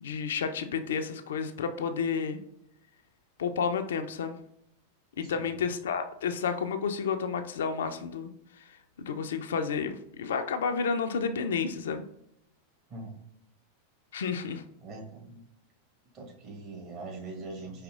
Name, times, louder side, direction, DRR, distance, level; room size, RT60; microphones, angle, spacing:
voice 1, 0.0-2.4 3.4-4.4 5.2-8.3 8.6-12.0 14.1-14.6, left 6 dB, 60° left, 8 dB, 0.3 m, -31 dB
voice 2, 5.2-5.6 12.9-13.2 14.8-15.4 16.1-17.8, right 3 dB, 40° right, -1 dB, 1.2 m, -42 dB
4.9 x 2.9 x 2.4 m, 0.77 s
figure-of-eight pair, 90°, 0 cm